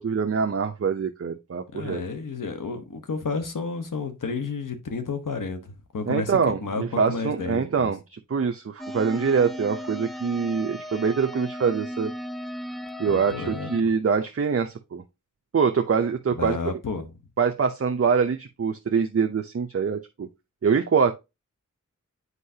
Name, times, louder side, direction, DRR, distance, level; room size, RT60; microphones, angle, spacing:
voice 1, 0.0-2.0 6.0-12.1 13.0-15.0 15.5-16.6 17.4-20.3 20.6-21.1, right 6 dB, 50° right, 0.6 m, -24 dB
voice 2, 1.7-7.9 13.1-13.7 16.3-17.1, left 4 dB, 90° left, 1.2 m, -31 dB
sound 1, 8.8-13.8, equal, ahead, 0.5 m, -36 dB
8.3 x 4.7 x 2.8 m
wide cardioid pair, 70°, 31 cm